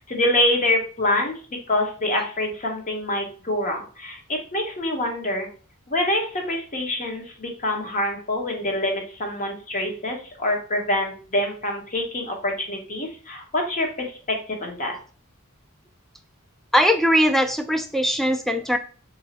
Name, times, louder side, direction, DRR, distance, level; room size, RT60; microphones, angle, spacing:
voice 1, 0.0-1.3 1.7-5.5 5.9-15.0, left 1 dB, 40° left, 2 dB, 0.9 m, -26 dB
voice 2, 16.7-18.8, equal, ahead, 7 dB, 0.3 m, -20 dB
2.9 x 2.8 x 4.1 m, 0.39 s
head